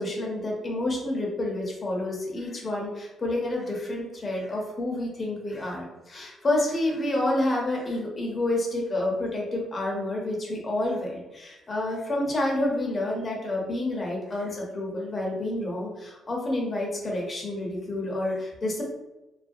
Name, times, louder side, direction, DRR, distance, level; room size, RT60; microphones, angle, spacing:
voice 1, 0.0-18.8, left 1 dB, 35° left, -1 dB, 0.6 m, -29 dB
2.3 x 2.0 x 2.6 m, 1.0 s
cardioid pair, 90°, 0 cm